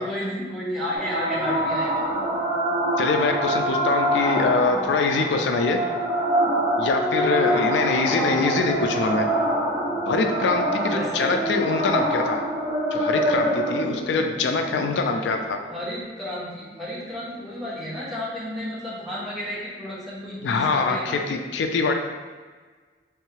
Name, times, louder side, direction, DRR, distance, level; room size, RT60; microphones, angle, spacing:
voice 1, 0.0-1.9 7.1-8.1 8.6-9.0 10.8-11.7 15.1-15.3 15.7-21.2, equal, ahead, -8 dB, 1.0 m, -33 dB
sound 1, 0.9-15.9, right 1 dB, 20° right, 1.2 m, -25 dB
voice 2, 3.0-5.8 6.8-9.3 10.1-12.4 12.9-15.6 20.4-21.9, left 4 dB, 90° left, 5 dB, 0.3 m, -24 dB
3.4 x 3.1 x 3.2 m, 1.4 s
head